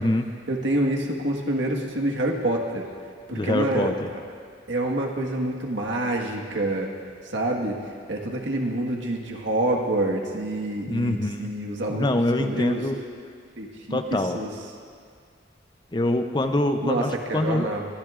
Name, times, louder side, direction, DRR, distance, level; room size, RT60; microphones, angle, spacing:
voice 1, 0.5-2.9 3.3-3.9 4.7-6.9 7.3-7.8 8.1-12.1 12.4-12.8 13.6-14.5 16.8-17.0 17.3-17.9, right 1 dB, 80° right, 0 dB, 1.5 m, -27 dB
voice 2, 3.3-4.1 10.9-11.5 11.9-13.0 13.9-14.4 15.9-17.7, left 1 dB, 25° left, 7 dB, 0.6 m, -25 dB
23.5 x 14.5 x 2.5 m, 2.2 s
head